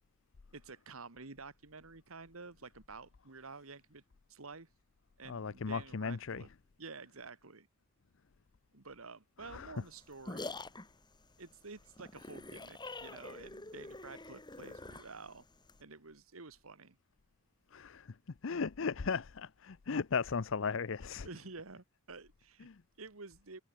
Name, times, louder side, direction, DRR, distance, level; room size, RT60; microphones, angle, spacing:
voice 1, 0.5-4.0 4.3-4.7 5.2-6.5 6.8-7.7 8.7-10.6 11.4-15.5 15.8-17.0 21.2-22.7 23.0-23.6, right 4 dB, 85° right, 1.9 m, -50 dB
voice 2, 5.2-6.5 9.4-9.8 17.7-21.3 22.6-22.8, left 5 dB, 65° left, 0.6 m, -37 dB
sound 1, 9.8-15.8, left 2 dB, 20° left, 2.1 m, -46 dB
head